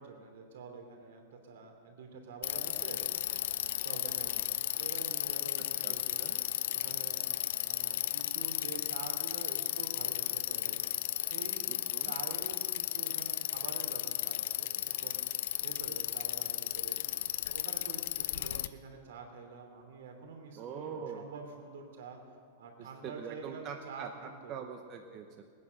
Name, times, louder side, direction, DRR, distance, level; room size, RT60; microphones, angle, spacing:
voice 1, 0.0-3.0 3.5-6.3 6.7-10.8 11.2-11.7 12.0-15.2 15.6-17.0 17.5-22.2 22.6-24.5, right 4 dB, 80° right, 4 dB, 3.1 m, -47 dB
Bicycle, 2.4-18.7, left 13 dB, 65° left, 0.5 m, -34 dB
voice 2, 5.8-6.4 11.7-12.1 20.5-21.2 22.8-25.4, right 7 dB, 30° right, 4 dB, 0.9 m, -44 dB
20.0 x 9.7 x 6.5 m, 2.1 s
supercardioid pair, 160°, 0 cm